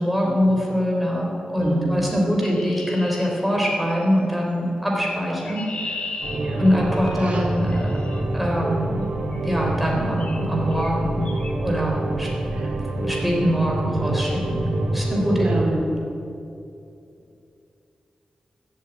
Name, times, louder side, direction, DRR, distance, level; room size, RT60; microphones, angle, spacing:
voice 1, 0.0-6.0 6.6-8.0 8.3-9.1 9.4-11.3 11.6-12.3 13.0-15.5, equal, 5° right, -2 dB, 3.6 m, -23 dB
voice 2, 1.6-2.0 6.3-6.6 7.1-7.5 12.5-12.7 15.4-15.9, right 1 dB, 55° right, -1 dB, 3.5 m, -29 dB
Chirp tweet, 2.4-4.0 5.1-8.2 9.3-9.6 10.2-10.4 10.7-10.9 11.2-11.5, left 3 dB, 60° left, 2.0 m, -37 dB
sound 1, 6.2-15.6, right 2 dB, 85° right, 2.3 m, -26 dB
14.5 x 8.1 x 9.1 m, 2.7 s
wide cardioid pair, 120°, 2 cm